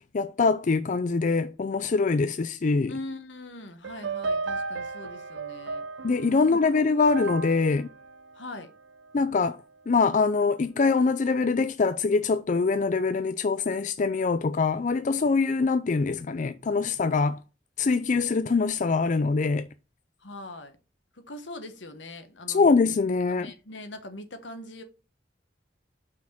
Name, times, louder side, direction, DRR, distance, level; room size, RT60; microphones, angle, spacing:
voice 1, 0.1-2.9 6.0-7.9 9.1-9.6 9.9-17.4 17.8-19.7 22.5-23.5, left 4 dB, 45° left, 0.4 m, -24 dB
voice 2, 2.9-5.8 6.4-6.7 8.3-8.7 20.2-20.8 21.1-22.7 23.4-24.8, left 2 dB, 80° left, 1.4 m, -42 dB
sound 1, 3.8-9.2, right 3 dB, 85° right, 0.6 m, -35 dB
5.8 x 4.5 x 6.0 m
head